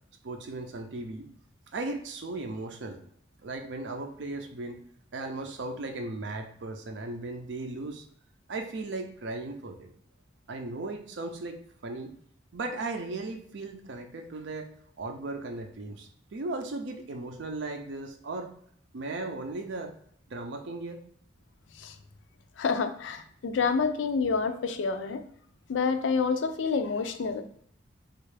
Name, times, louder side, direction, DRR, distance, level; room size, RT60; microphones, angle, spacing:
voice 1, 0.2-1.3 1.7-3.0 3.4-4.8 5.1-8.0 8.5-9.9 10.5-12.1 12.5-14.7 15.0-18.5 18.9-19.9 20.3-21.0, right 2 dB, 65° right, 5 dB, 0.5 m, -36 dB
voice 2, 22.6-25.2 25.7-27.4, left 5 dB, 80° left, 8 dB, 0.4 m, -28 dB
3.4 x 2.4 x 3.2 m, 0.64 s
head